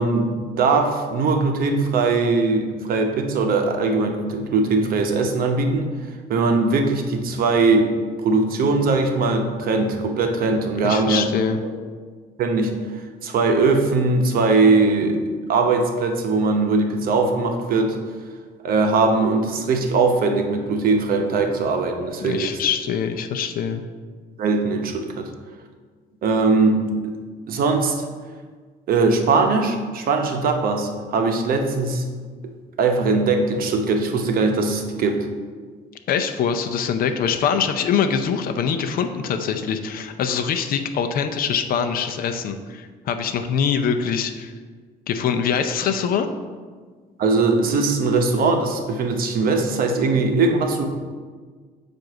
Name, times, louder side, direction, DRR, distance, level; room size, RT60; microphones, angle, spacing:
voice 1, 0.0-5.9 6.3-7.9 8.2-11.3 12.4-12.7 13.2-15.2 15.5-18.0 18.6-22.6 24.4-25.3 26.2-27.2 27.5-28.0 28.9-32.0 32.8-35.3 47.2-50.9, right 3 dB, 60° right, 4 dB, 0.8 m, -20 dB
voice 2, 10.8-11.6 22.2-23.8 36.1-44.5 45.1-46.3, left 7 dB, 60° left, 7 dB, 0.6 m, -23 dB
7.6 x 2.6 x 5.8 m, 1.5 s
cardioid pair, 110°, 17 cm